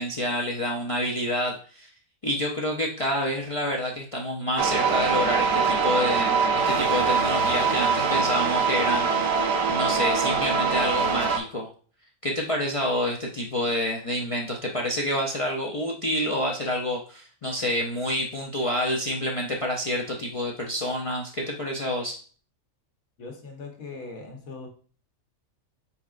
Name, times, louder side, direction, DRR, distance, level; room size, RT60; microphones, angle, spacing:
voice 1, 0.0-1.9 2.2-9.4 9.7-11.7 12.2-22.2, left 1 dB, 60° left, 0.3 m, -28 dB
sound 1, 4.6-11.4, right 5 dB, 60° right, 0.7 m, -23 dB
voice 2, 23.2-24.7, left 3 dB, 90° left, 1.4 m, -40 dB
4.8 x 4.1 x 2.4 m
omnidirectional pair, 1.4 m